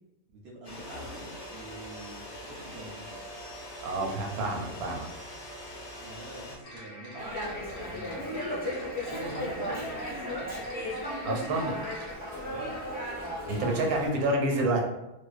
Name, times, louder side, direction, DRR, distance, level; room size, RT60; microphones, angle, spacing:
voice 1, 0.4-3.2 6.0-8.2 9.1-10.8 12.4-12.8 14.0-14.4, right 2 dB, 65° right, -4 dB, 0.7 m, -44 dB
sound 1, 0.6-6.6, left 1 dB, 60° left, 0.8 m, -43 dB
voice 2, 3.8-5.1 11.2-11.8 13.5-14.8, right 2 dB, 90° right, 0 dB, 1.1 m, -28 dB
sound 2, 6.6-12.2, left 1 dB, 35° left, 1.0 m, -46 dB
Dog, 7.2-14.1, equal, 10° right, 0.4 m, -35 dB
2.5 x 2.0 x 2.4 m, 0.95 s
omnidirectional pair, 1.5 m